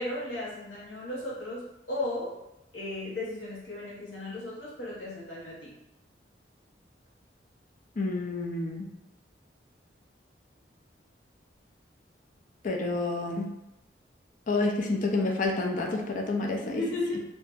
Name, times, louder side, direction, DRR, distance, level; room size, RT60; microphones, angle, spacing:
voice 1, 0.0-2.3 2.7-5.7 16.5-17.2, left 1 dB, 80° left, -6 dB, 1.0 m, -35 dB
voice 2, 8.0-8.8 12.6-13.5 14.5-16.6, left 2 dB, 45° left, 1 dB, 0.5 m, -29 dB
2.7 x 2.1 x 3.4 m, 0.87 s
head